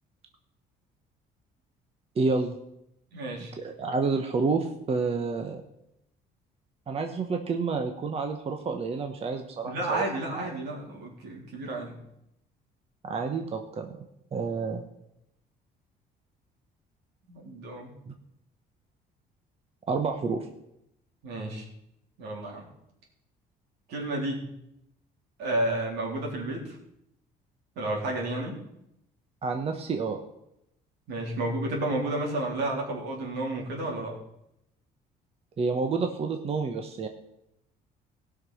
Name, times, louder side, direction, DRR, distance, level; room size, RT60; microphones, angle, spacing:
voice 1, 2.2-2.6 3.6-5.6 6.9-10.6 13.0-13.9 14.3-14.8 18.1-18.2 19.9-20.5 29.4-30.2 35.6-37.1, right 4 dB, 35° right, 5 dB, 1.1 m, -29 dB
voice 2, 3.1-3.5 9.6-12.0 17.3-17.9 21.2-21.7 22.2-22.6 23.9-24.4 25.4-26.8 27.8-28.6 31.1-34.2, right 2 dB, 80° right, -1 dB, 3.7 m, -31 dB
17.0 x 6.1 x 6.3 m, 0.81 s
cardioid pair, 110°, 17 cm